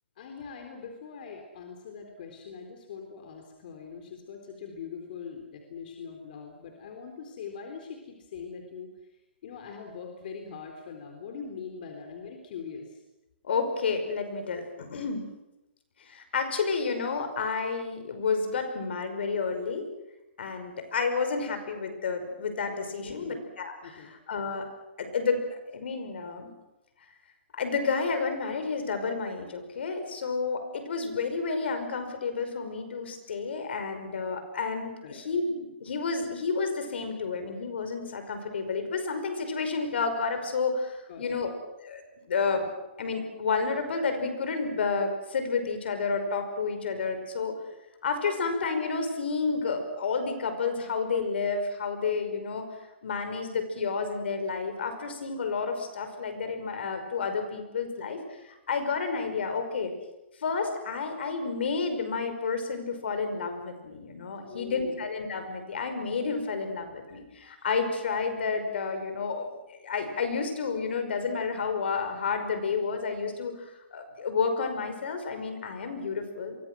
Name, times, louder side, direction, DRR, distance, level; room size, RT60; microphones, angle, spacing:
voice 1, 0.2-8.9 9.4-13.0 23.0-23.4 23.8-24.1 35.0-35.2 41.1-41.4 64.4-64.9, left 6 dB, 50° left, 3 dB, 3.8 m, -42 dB
voice 2, 13.4-15.3 16.0-19.9 20.4-24.7 25.0-25.5 25.7-26.5 27.5-35.5 35.8-41.5 41.8-42.7 43.0-47.6 48.0-52.7 53.0-59.9 60.4-76.6, left 4 dB, 70° left, 7 dB, 5.4 m, -30 dB
28.5 x 23.5 x 6.3 m, 0.98 s
hypercardioid pair, 160°, 6 cm